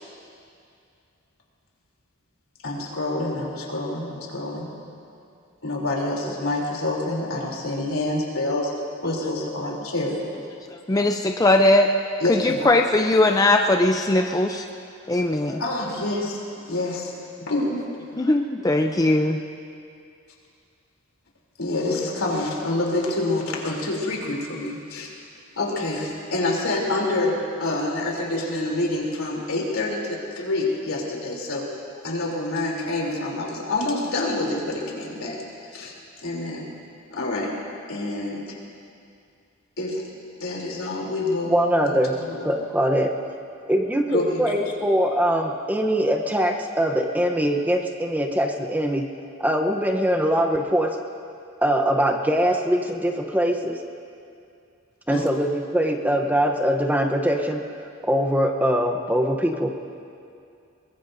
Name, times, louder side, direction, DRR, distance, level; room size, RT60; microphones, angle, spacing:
voice 1, 2.6-4.7 5.6-8.7 9.0-10.2 12.2-12.7 15.6-16.4 16.7-17.1 17.4-17.8 21.6-25.1 25.6-31.6 32.0-35.4 35.7-35.9 36.2-36.7 37.1-37.5 37.9-38.6 39.8-40.0 40.4-41.6 41.8-42.5 44.1-44.4 55.1-55.2, left 2 dB, 80° left, -2 dB, 3.2 m, -27 dB
voice 2, 10.9-11.9 12.3-14.6 15.1-15.6 18.1-19.4, left 2 dB, 15° left, 3 dB, 0.5 m, -19 dB
voice 3, 41.5-42.1 42.4-43.1 43.7-49.1 49.4-51.0 51.6-53.8 55.1-57.6 58.0-59.7, equal, 10° right, 2 dB, 0.8 m, -22 dB
22.5 x 21.5 x 2.6 m, 2.5 s
head